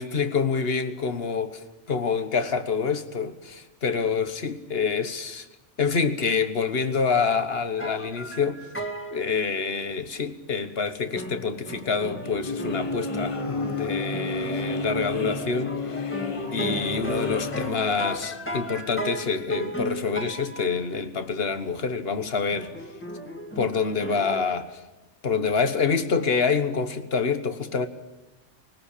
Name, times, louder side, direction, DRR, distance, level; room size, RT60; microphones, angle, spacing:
voice 1, 0.0-5.5 5.8-8.8 9.1-16.0 16.5-22.7 23.6-24.8 25.2-27.9, left 5 dB, 60° left, 1.6 m, -27 dB
sound 1, 7.8-9.3 11.1-20.8 22.5-24.5, right 1 dB, 10° left, 2.3 m, -35 dB
sound 2, 12.2-17.7, left 3 dB, 30° left, 0.9 m, -31 dB
21.0 x 19.5 x 8.5 m
omnidirectional pair, 1.2 m